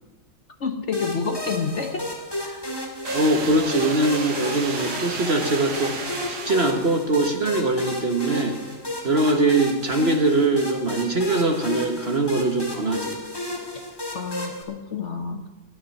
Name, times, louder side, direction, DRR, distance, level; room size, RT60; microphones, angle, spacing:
voice 1, 0.6-2.1 2.5-2.7 14.1-15.5, left 5 dB, 45° left, 6 dB, 1.0 m, -29 dB
sound 1, 0.9-14.6, left 1 dB, 15° left, 2.2 m, -33 dB
sound 2, 3.0-7.1, right 4 dB, 60° right, 2.2 m, -33 dB
voice 2, 3.1-8.6 9.0-13.2, right 2 dB, 40° right, 5 dB, 1.2 m, -22 dB
12.5 x 9.3 x 10.0 m, 1.2 s
omnidirectional pair, 2.0 m